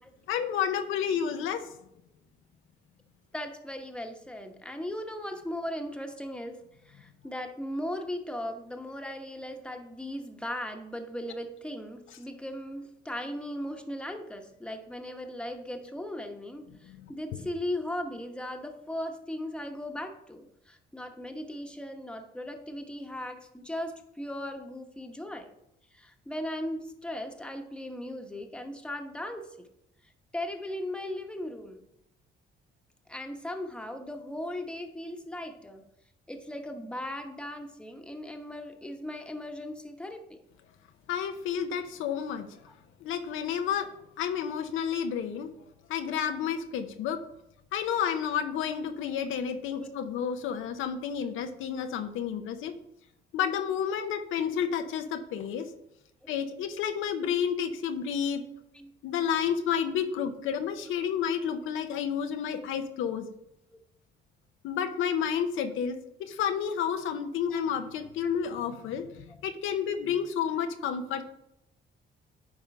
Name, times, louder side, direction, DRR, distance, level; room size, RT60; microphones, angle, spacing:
voice 1, 0.3-1.6 16.8-17.1 41.1-42.5 43.0-43.9 44.2-45.5 45.9-47.2 47.7-52.7 53.3-55.7 56.3-58.4 59.0-63.3 64.6-71.2, left 8 dB, 85° left, 7 dB, 0.7 m, -30 dB
voice 2, 3.3-25.5 25.9-29.7 30.3-31.8 33.1-35.8 36.3-40.4 42.7-42.8 49.8-49.9 56.2-56.3 58.7-58.9 67.5-67.6 68.2-68.3, left 1 dB, 5° left, 4 dB, 1.1 m, -38 dB
9.8 x 3.8 x 5.4 m, 0.82 s
cardioid pair, 90°, 20 cm